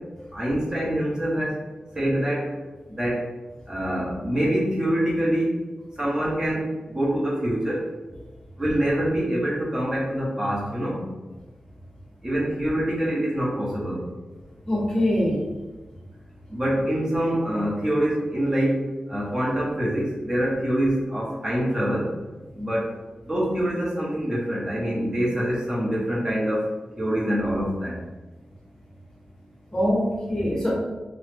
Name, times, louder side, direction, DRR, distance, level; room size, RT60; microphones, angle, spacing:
voice 1, 0.3-1.6 2.0-2.5 3.0-3.3 3.7-5.5 6.0-7.8 8.6-11.0 12.2-14.0 16.5-18.8 19.1-22.0 22.6-22.9 23.2-26.7 27.0-28.0, equal, 25° right, -6 dB, 0.9 m, -25 dB
voice 2, 14.7-15.4 29.7-30.7, left 1 dB, 25° left, -4 dB, 0.7 m, -23 dB
3.0 x 2.0 x 3.3 m, 1.2 s
wide cardioid pair, 115°, 3 cm